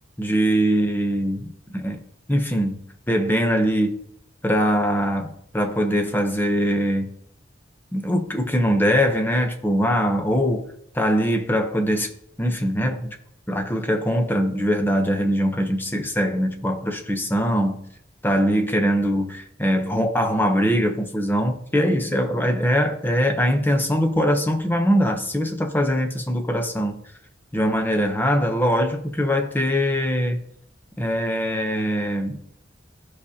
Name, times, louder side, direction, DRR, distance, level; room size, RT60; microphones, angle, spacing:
voice 1, 0.2-2.0 2.3-4.0 4.4-7.2 7.9-10.6 10.9-12.1 12.4-13.2 13.5-17.9 18.2-27.0 27.5-30.4 31.0-32.4, equal, 10° left, 0.8 m, -22 dB
14.0 x 4.9 x 2.8 m
head